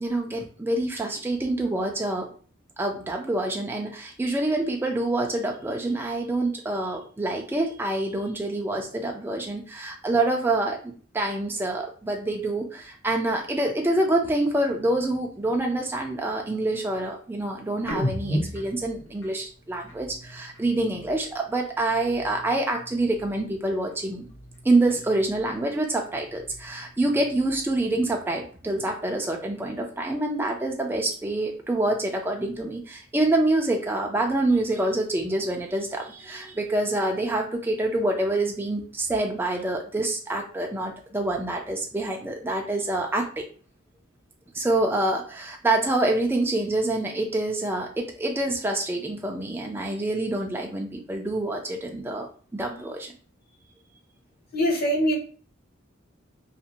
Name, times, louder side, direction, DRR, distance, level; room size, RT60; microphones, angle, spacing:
voice 1, 0.0-2.3 2.8-24.3 24.6-43.4 44.5-52.3 52.5-53.1, right 2 dB, 10° right, 1 dB, 0.3 m, -26 dB
sound 1, 17.8-21.4 21.7-23.6 23.8-25.7 26.0-27.9, equal, 75° left, 0.9 m, -37 dB
voice 2, 54.5-55.1, equal, 45° left, -1 dB, 0.8 m, -22 dB
2.5 x 2.0 x 2.8 m, 0.41 s
head